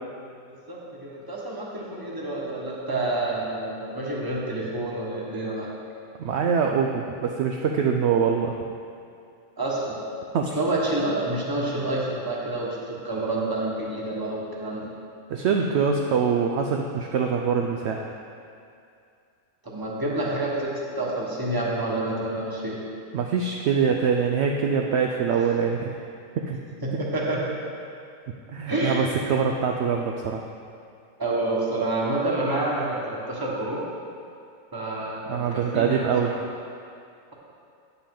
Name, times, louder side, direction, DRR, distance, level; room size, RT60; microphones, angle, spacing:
voice 1, 0.6-5.7 9.6-10.0 10.5-14.9 19.6-22.8 26.8-27.4 28.7-29.1 31.2-33.8 34.7-36.3, right 2 dB, 15° right, -4 dB, 1.3 m, -28 dB
voice 2, 6.2-8.5 10.3-10.6 15.3-18.1 23.1-26.0 26.4-26.6 28.5-30.4 35.3-36.4, right 6 dB, 70° right, 2 dB, 0.7 m, -24 dB
8.6 x 8.2 x 3.8 m, 2.4 s
omnidirectional pair, 1.6 m